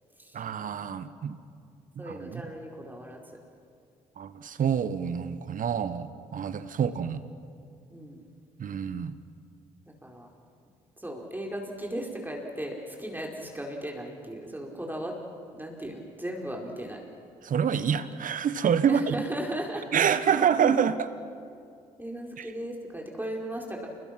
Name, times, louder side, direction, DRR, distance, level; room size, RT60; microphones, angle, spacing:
voice 1, 0.3-1.4 2.0-2.4 4.2-7.2 8.6-9.1 17.4-19.2 19.9-21.1 22.4-22.5, right 7 dB, 50° right, 13 dB, 1.3 m, -27 dB
voice 2, 2.0-3.2 7.9-8.3 10.0-10.3 11.0-15.1 15.5-17.0 18.8-20.1 22.0-23.9, right 1 dB, 10° right, 0 dB, 4.8 m, -36 dB
28.5 x 22.0 x 6.1 m, 2.4 s
hypercardioid pair, 50°, 17 cm